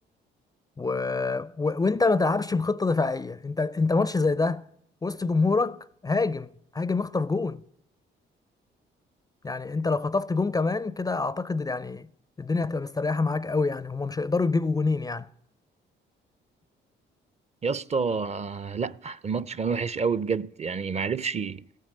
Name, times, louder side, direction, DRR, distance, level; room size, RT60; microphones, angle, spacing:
voice 1, 0.8-4.6 5.0-6.5 6.7-7.6 9.4-12.1 12.4-15.3, left 3 dB, 20° left, 0.4 m, -26 dB
voice 2, 17.6-21.6, right 5 dB, 35° right, 0.5 m, -29 dB
15.0 x 9.3 x 6.5 m
cardioid pair, 90°, 20 cm